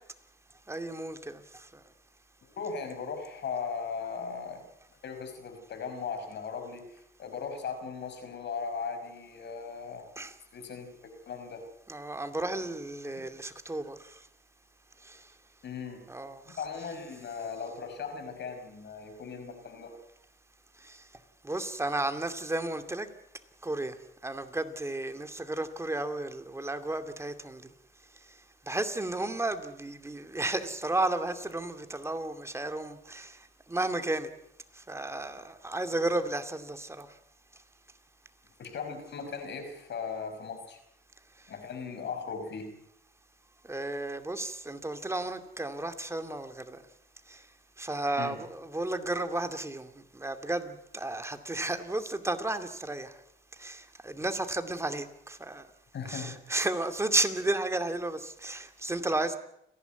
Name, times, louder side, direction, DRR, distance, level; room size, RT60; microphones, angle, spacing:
voice 1, 0.7-1.7 10.2-10.3 11.9-14.2 15.0-15.2 16.1-16.6 20.8-21.0 21.4-23.1 23.6-23.9 24.2-27.6 28.7-33.4 33.7-34.3 34.8-37.1 43.7-46.8 47.3-47.4 47.8-53.1 53.6-55.7 56.0-59.4, right 2 dB, 15° right, 7 dB, 2.4 m, -33 dB
voice 2, 2.4-4.6 5.0-10.1 10.5-11.6 13.1-13.2 15.6-16.0 16.6-19.9 38.6-40.8 41.5-42.7 48.2-48.4 55.9-56.3, left 5 dB, 60° left, 6 dB, 5.5 m, -38 dB
30.0 x 11.5 x 9.2 m, 0.78 s
cardioid pair, 90°, 20 cm